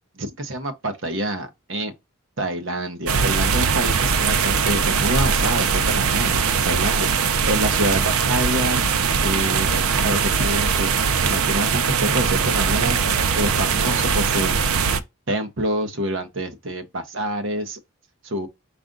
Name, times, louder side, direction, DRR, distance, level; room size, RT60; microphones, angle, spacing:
voice 1, 0.2-1.9 2.4-7.1 7.4-8.8 9.2-10.9 11.2-13.0 13.3-14.6 15.3-17.8 18.2-18.5, right 1 dB, 55° right, 0.9 m, -26 dB
sound 1, 3.1-15.0, right 6 dB, 75° right, 0.5 m, -21 dB
4.8 x 2.5 x 3.8 m
head